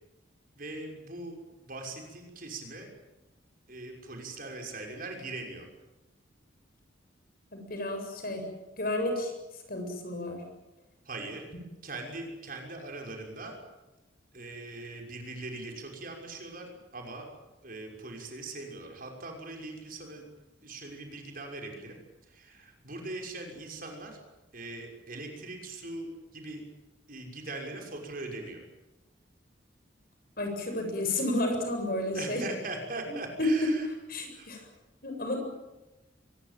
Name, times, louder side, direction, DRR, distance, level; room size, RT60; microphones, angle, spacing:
voice 1, 0.6-2.9 3.7-5.7 11.0-11.5 11.8-13.6 14.3-17.3 17.6-20.2 20.6-22.0 22.3-24.2 24.5-26.1 26.3-26.6 27.1-28.6 32.1-33.9 34.3-34.5, right 2 dB, 45° right, 2 dB, 6.2 m, -41 dB
voice 2, 7.5-8.5 8.8-9.3 9.7-10.4 30.4-32.4 33.4-33.7 34.1-34.6 35.0-35.4, left 1 dB, 50° left, 4 dB, 7.7 m, -31 dB
24.0 x 21.5 x 9.2 m, 1.0 s
head